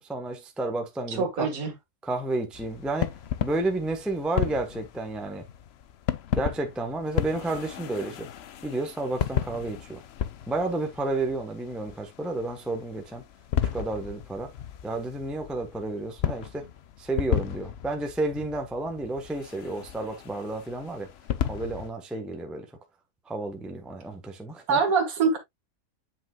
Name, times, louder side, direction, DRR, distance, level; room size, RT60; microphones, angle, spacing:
voice 1, 0.0-1.5 2.0-3.1 3.4-5.4 6.3-8.3 8.6-10.0 10.5-13.2 13.7-14.5 14.8-16.6 17.0-21.1 21.5-22.7 23.3-24.8, right 2 dB, ahead, 0.9 m, -31 dB
voice 2, 1.2-1.7 24.7-25.4, right 5 dB, 60° right, 2.0 m, -24 dB
sound 1, 2.5-21.9, left 10 dB, 65° left, 0.6 m, -34 dB
7.7 x 6.1 x 2.3 m
omnidirectional pair, 1.7 m